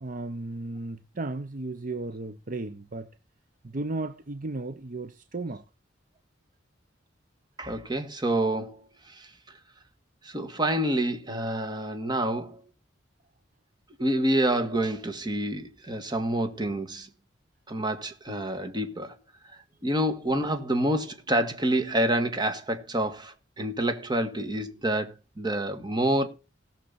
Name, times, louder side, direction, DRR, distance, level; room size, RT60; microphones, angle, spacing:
voice 1, 0.0-3.1 3.6-5.6, right 2 dB, 45° right, 0.7 m, -35 dB
voice 2, 7.6-8.8 9.1-9.3 10.2-12.6 14.0-17.1 17.7-19.1 19.8-26.3, right 1 dB, 25° right, 1.8 m, -27 dB
18.0 x 6.7 x 4.1 m
head